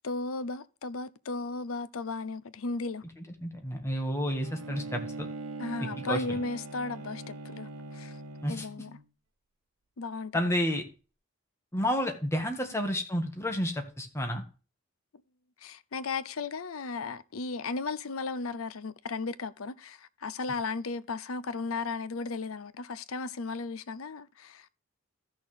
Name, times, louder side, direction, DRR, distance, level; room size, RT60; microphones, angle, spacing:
voice 1, 0.0-3.0 5.6-7.7 7.9-8.2 8.5-9.0 10.0-10.3 15.6-24.7, left 3 dB, 90° left, 0.7 m, -35 dB
voice 2, 3.4-5.3 6.0-6.2 8.4-8.7 10.3-10.8 11.7-14.4, equal, 15° left, 1.8 m, -30 dB
Bowed string instrument, 4.4-9.0, right 2 dB, 90° right, 1.2 m, -42 dB
14.5 x 6.4 x 3.4 m
head